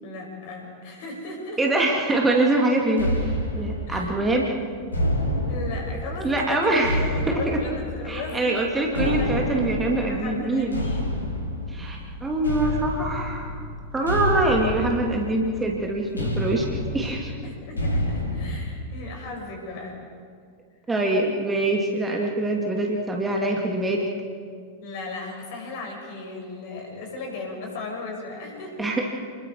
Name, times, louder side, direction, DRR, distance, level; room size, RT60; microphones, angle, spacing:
voice 1, 0.0-1.6 3.9-4.2 5.5-9.4 10.0-11.2 14.0-14.5 17.4-20.0 24.8-29.0, left 3 dB, 50° left, 1 dB, 6.1 m, -36 dB
voice 2, 1.6-4.6 6.2-7.0 7.5-7.6 8.1-10.8 11.7-13.6 13.9-17.3 20.9-24.1 28.8-29.0, right 2 dB, 15° right, 0 dB, 2.6 m, -24 dB
sound 1, 3.0-18.6, left 1 dB, 80° left, 3.1 m, -29 dB
30.0 x 21.0 x 4.8 m, 2.1 s
figure-of-eight pair, 90°, 0 cm